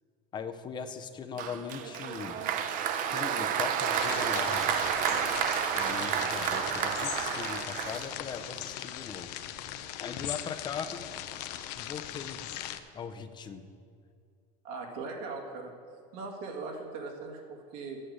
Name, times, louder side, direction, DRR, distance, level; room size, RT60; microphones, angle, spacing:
voice 1, 0.3-2.4 3.1-4.8 5.7-9.3 10.0-11.1 11.8-12.5 12.9-13.6, left 6 dB, 20° left, 9 dB, 0.5 m, -40 dB
Applause, 1.4-8.5, right 8 dB, 40° right, 0.6 m, -30 dB
sound 1, 3.9-12.8, left 12 dB, 90° left, 0.6 m, -39 dB
voice 2, 14.6-15.7 16.1-18.0, right 3 dB, 75° right, 0 dB, 2.0 m, -39 dB
8.8 x 6.6 x 8.0 m, 2.4 s
cardioid pair, 155°, 20 cm